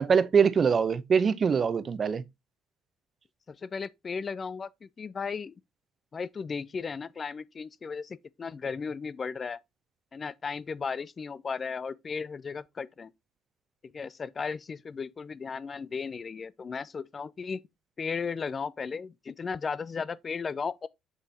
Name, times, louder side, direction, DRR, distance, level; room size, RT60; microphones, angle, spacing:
voice 1, 0.0-2.2, right 6 dB, 40° right, 0.7 m, -23 dB
voice 2, 3.5-5.5 6.1-9.6 10.1-13.1 13.9-17.6 18.0-20.9, left 5 dB, 35° left, 0.4 m, -35 dB
7.1 x 5.3 x 2.8 m
hypercardioid pair, 65°, 0 cm